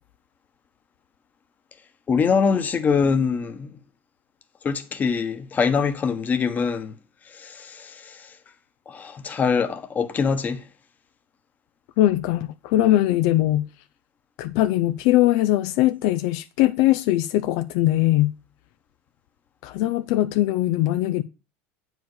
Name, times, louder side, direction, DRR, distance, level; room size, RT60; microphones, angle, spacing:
voice 1, 2.1-3.8 4.6-6.9 7.3-8.3 8.9-10.6, left 5 dB, 25° left, 1.2 m, -24 dB
voice 2, 12.0-13.7 14.4-18.4 19.6-21.2, left 15 dB, 65° left, 0.5 m, -21 dB
8.2 x 5.0 x 6.3 m
supercardioid pair, 130°, 7 cm